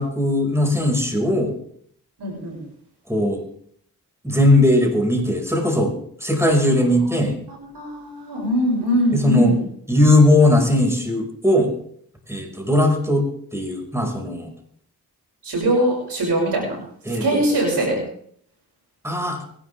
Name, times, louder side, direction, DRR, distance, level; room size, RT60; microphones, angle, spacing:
voice 1, 0.0-1.5 3.1-3.4 4.2-5.9 6.2-7.3 9.1-9.5 9.9-11.7 12.3-13.3 13.5-14.5 17.1-17.6 19.0-19.4, left 1 dB, 5° right, 1 dB, 5.6 m, -18 dB
voice 2, 2.2-2.6 6.8-9.6 15.4-16.8 17.1-18.0, equal, 90° right, -1 dB, 6.4 m, -22 dB
24.5 x 11.5 x 3.6 m, 0.65 s
cardioid pair, 45°, 39 cm